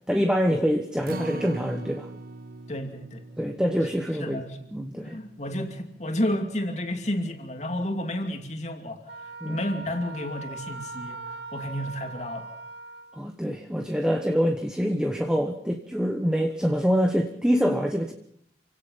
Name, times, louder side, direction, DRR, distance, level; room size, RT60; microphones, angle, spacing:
voice 1, 0.1-2.1 3.4-4.4 4.7-5.2 9.4-9.6 13.1-18.1, equal, 5° right, 4 dB, 1.2 m, -25 dB
Acoustic guitar, 1.1-7.4 7.8-7.9 8.3-8.4, right 2 dB, 50° right, 0.9 m, -43 dB
voice 2, 2.7-3.2 4.2-4.6 5.0-11.2 11.5-12.5, left 1 dB, 40° left, 4 dB, 2.7 m, -31 dB
Wind instrument woodwind instrument, 9.1-13.2, right 3 dB, 75° right, 1.9 m, -40 dB
28.0 x 17.5 x 5.7 m, 0.66 s
head